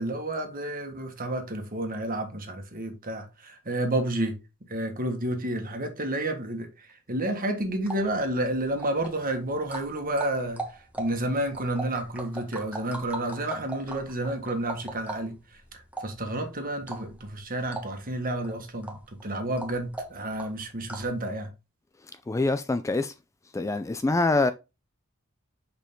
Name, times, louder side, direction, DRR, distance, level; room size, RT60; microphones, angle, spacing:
voice 1, 0.0-4.3 4.7-10.6 11.0-21.5, right 1 dB, 40° right, 1.6 m, -30 dB
sound 1, 7.6-21.2, right 2 dB, 5° right, 1.1 m, -41 dB
voice 2, 22.3-23.1 23.5-24.5, left 2 dB, 15° left, 0.3 m, -25 dB
6.7 x 5.1 x 3.7 m
head